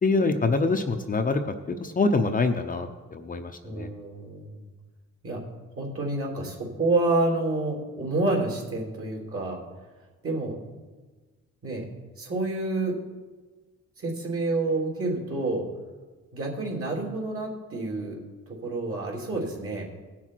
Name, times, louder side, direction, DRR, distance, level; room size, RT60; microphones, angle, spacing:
voice 1, 0.0-1.4 1.7-3.9, left 3 dB, 30° left, 5 dB, 0.7 m, -25 dB
voice 2, 3.6-4.6 5.2-5.4 5.8-9.6 10.2-10.5 11.6-11.8 12.2-12.9 14.0-15.6 16.3-18.2 18.6-19.8, right 2 dB, 45° right, -1 dB, 3.1 m, -28 dB
17.5 x 5.9 x 4.6 m, 1.3 s
cardioid pair, 90°, 30 cm